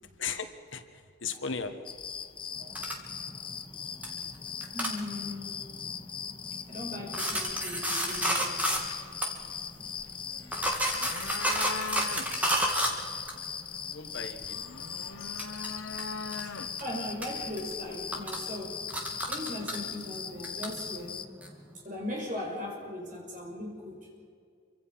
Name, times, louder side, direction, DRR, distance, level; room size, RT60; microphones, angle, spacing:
voice 1, 0.2-1.8 13.8-14.6, left 5 dB, 70° left, 8 dB, 1.5 m, -37 dB
sound 1, 1.9-21.3, left 7 dB, 25° left, 0.8 m, -40 dB
sound 2, 2.6-14.3 14.6-16.8 17.2-21.8, equal, 10° right, 2.7 m, -33 dB
voice 2, 4.7-5.5 6.7-8.5 16.4-18.9 19.3-21.2 21.8-24.1, left 1 dB, 40° right, -1 dB, 6.2 m, -38 dB
sound 3, 7.5-18.3, left 4 dB, 90° left, 1.1 m, -43 dB
27.5 x 25.0 x 5.7 m, 2.3 s
head